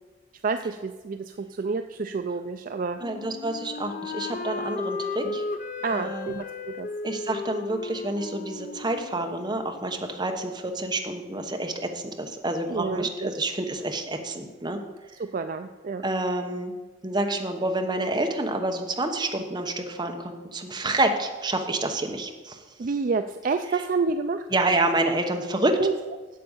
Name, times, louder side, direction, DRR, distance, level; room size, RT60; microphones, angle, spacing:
voice 1, 0.4-3.0 5.2-5.4 5.8-6.9 12.7-13.3 15.2-16.0 22.8-24.5 25.8-25.9, right 4 dB, 45° right, 8 dB, 0.4 m, -29 dB
Wind instrument woodwind instrument, 3.0-9.8, left 4 dB, 45° left, 0.5 m, -35 dB
voice 2, 3.0-5.4 5.9-6.3 7.0-14.8 16.0-16.7 17.0-22.6 24.5-25.8, right 2 dB, 25° right, 4 dB, 1.0 m, -28 dB
8.5 x 7.7 x 7.1 m, 1.3 s
head